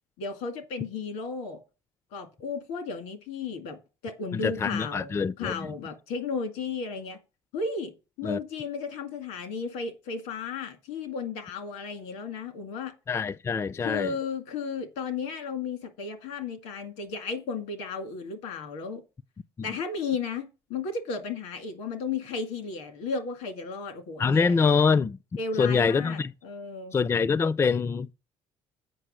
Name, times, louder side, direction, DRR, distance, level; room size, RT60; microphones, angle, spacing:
voice 1, 0.2-1.6 2.1-7.2 7.5-7.9 8.2-12.9 13.8-19.0 19.6-24.5 25.4-27.0, left 5 dB, 85° left, 2.0 m, -34 dB
voice 2, 4.3-5.7 8.2-8.4 13.1-14.1 19.6-19.7 24.2-25.2 25.6-26.3 26.9-28.1, left 5 dB, 25° left, 0.4 m, -25 dB
7.7 x 5.5 x 6.3 m
supercardioid pair, 90°, 11 cm